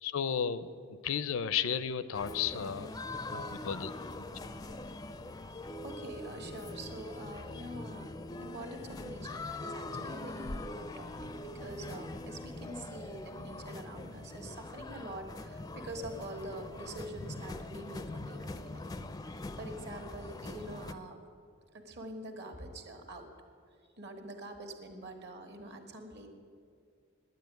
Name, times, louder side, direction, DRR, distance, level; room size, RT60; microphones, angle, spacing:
voice 1, 0.0-2.9 3.3-3.9, left 7 dB, 75° left, 15 dB, 0.5 m, -33 dB
sound 1, 2.1-20.9, left 2 dB, 20° left, 0.4 m, -42 dB
voice 2, 5.8-18.9 19.2-21.2 21.7-23.3 24.0-26.3, right 1 dB, 55° right, 4 dB, 1.5 m, -45 dB
9.9 x 9.2 x 9.1 m, 2.2 s
head